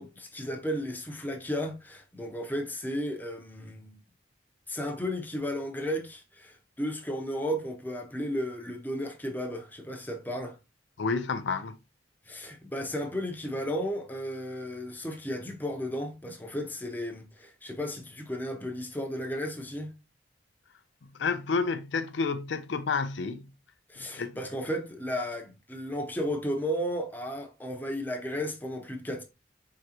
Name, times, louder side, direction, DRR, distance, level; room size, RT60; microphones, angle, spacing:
voice 1, 0.0-4.0 4.7-10.6 12.3-19.9 23.9-29.2, equal, 10° left, 0.8 m, -34 dB
voice 2, 11.0-11.8 21.0-23.5 24.2-24.4, left 4 dB, 80° left, 0.5 m, -30 dB
4.6 x 3.8 x 2.9 m
head